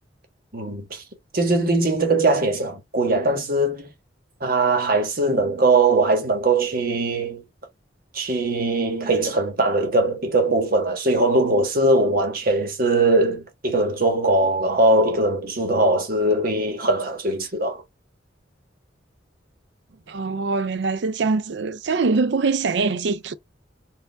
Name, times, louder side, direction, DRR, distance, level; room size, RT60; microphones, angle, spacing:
voice 1, 0.5-1.0 1.3-3.9 4.4-7.4 8.1-17.8, right 2 dB, 50° right, 1.4 m, -21 dB
voice 2, 20.1-23.3, right 4 dB, 70° right, 0.5 m, -23 dB
4.6 x 2.6 x 3.3 m
head